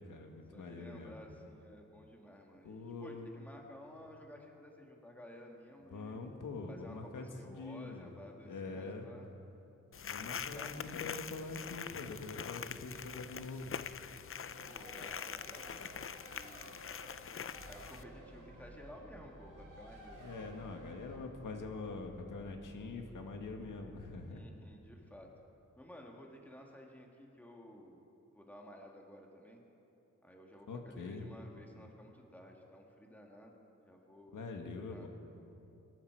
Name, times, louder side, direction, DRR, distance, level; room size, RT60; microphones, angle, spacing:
voice 1, 0.0-1.2 2.6-3.3 5.9-8.1 8.5-9.1 10.0-13.7 20.2-24.4 30.7-31.3 34.3-35.1, left 3 dB, 90° left, 3 dB, 1.8 m, -44 dB
voice 2, 0.5-6.2 6.7-9.3 10.2-11.3 14.7-15.9 16.3-16.7 17.5-20.3 24.3-25.3 25.8-28.0 28.3-29.6 30.2-34.4 34.9-35.1, equal, 5° left, 0 dB, 2.1 m, -54 dB
sound 1, 9.9-18.0, left 7 dB, 45° left, 0.5 m, -44 dB
Race car auto racing, 14.5-21.2, right 2 dB, 85° right, 4.7 m, -56 dB
sound 2, 17.5-24.2, right 1 dB, 45° right, 3.2 m, -56 dB
23.5 x 12.5 x 4.8 m, 2.9 s
wide cardioid pair, 95°, 31 cm